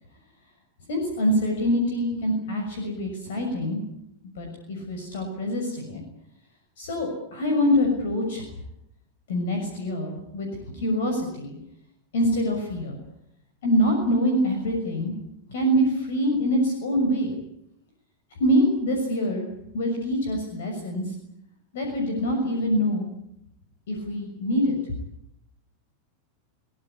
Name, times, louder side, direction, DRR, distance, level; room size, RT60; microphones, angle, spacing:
voice 1, 0.9-3.8 4.4-6.0 6.8-8.4 9.3-10.5 10.7-11.5 12.1-13.0 13.6-15.1 15.5-17.4 18.4-19.5 19.7-21.0 21.7-23.1 23.9-24.8, equal, 60° left, 3 dB, 6.4 m, -25 dB
23.5 x 19.0 x 9.8 m, 0.77 s
figure-of-eight pair, 90°, 0 cm